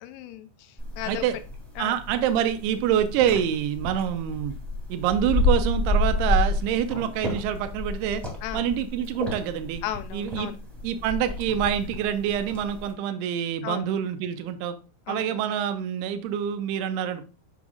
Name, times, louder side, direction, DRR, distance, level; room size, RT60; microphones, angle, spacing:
voice 1, 0.0-1.2 1.8-2.0 8.4-8.7 9.8-10.6 13.6-13.9 15.1-15.2, left 12 dB, 85° left, 11 dB, 2.7 m, -35 dB
sound 1, 0.8-12.9, left 2 dB, ahead, 1.4 m, -30 dB
voice 2, 1.1-1.4 1.8-4.5 4.9-8.2 8.5-9.8 10.1-10.5 10.8-14.8 15.1-17.3, right 9 dB, 90° right, 9 dB, 2.7 m, -26 dB
7.2 x 6.1 x 2.3 m, 0.35 s
omnidirectional pair, 4.6 m